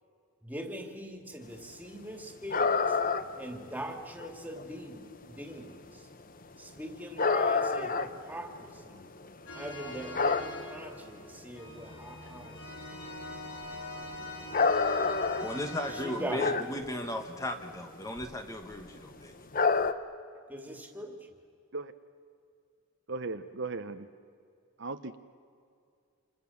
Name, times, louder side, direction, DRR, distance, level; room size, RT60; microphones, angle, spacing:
voice 1, 0.4-3.0 3.3-6.1 6.6-9.1 9.5-12.6 15.9-16.6 20.5-21.2, right 1 dB, 5° right, 4 dB, 2.5 m, -41 dB
sound 1, 2.5-3.4 3.7-3.8 4.2-4.6 5.6-5.8 6.4-6.6 7.2-9.3 9.6-10.9 11.4-11.5 11.9-12.0 12.3-12.6 12.9-13.1 13.7-16.9 17.2-17.4 18.0-18.3 18.6-18.9 19.5-19.9, left 4 dB, 40° left, 1.0 m, -28 dB
sound 2, 9.5-16.7, left 1 dB, 85° left, 5.3 m, -43 dB
voice 2, 15.4-19.3, left 1 dB, 15° left, 5 dB, 1.3 m, -36 dB
voice 3, 23.1-24.1 24.8-25.2, right 3 dB, 55° right, 9 dB, 0.9 m, -37 dB
28.5 x 27.5 x 7.2 m, 2.4 s
head